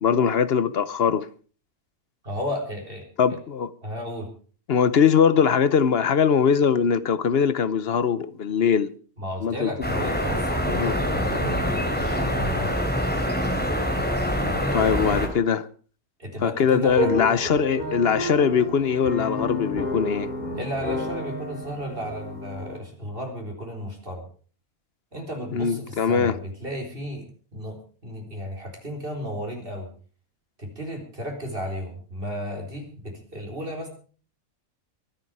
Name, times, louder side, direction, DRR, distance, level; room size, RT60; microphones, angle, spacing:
voice 1, 0.0-1.3 3.2-3.7 4.7-8.9 9.4-9.9 10.7-10.9 14.7-15.7 16.4-20.3 25.5-26.4, left 7 dB, 50° left, 1.0 m, -21 dB
voice 2, 2.2-3.4 3.8-4.3 9.2-12.7 14.4-14.8 16.2-17.4 20.6-24.2 25.1-27.3 27.5-27.8 28.0-29.9 30.6-33.9, equal, 40° right, 4.3 m, -33 dB
sound 1, 9.8-15.3, equal, 5° left, 3.0 m, -25 dB
sound 2, 16.9-22.8, equal, 30° left, 3.2 m, -31 dB
24.0 x 9.6 x 4.8 m
omnidirectional pair, 1.5 m